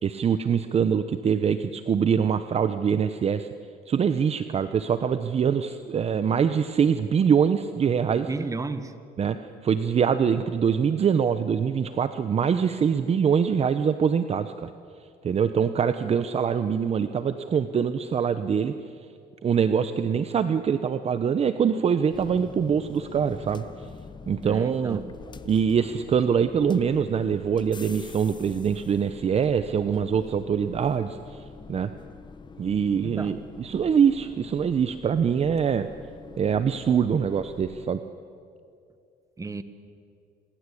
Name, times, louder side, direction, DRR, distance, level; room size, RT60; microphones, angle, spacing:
voice 1, 0.0-3.5 3.9-8.3 9.2-14.7 15.2-18.7 19.4-23.7 24.3-25.0 25.4-31.4 31.7-31.9 32.6-35.9 36.4-38.0, right 7 dB, 40° right, 11 dB, 0.9 m, -24 dB
voice 2, 8.3-8.9 24.4-25.1 33.0-33.3 39.4-39.6, right 3 dB, 20° right, 11 dB, 1.5 m, -33 dB
sound 1, 22.1-37.9, left 5 dB, 25° left, 1.2 m, -45 dB
27.0 x 21.5 x 8.5 m, 2.4 s
cardioid pair, 110°, 17 cm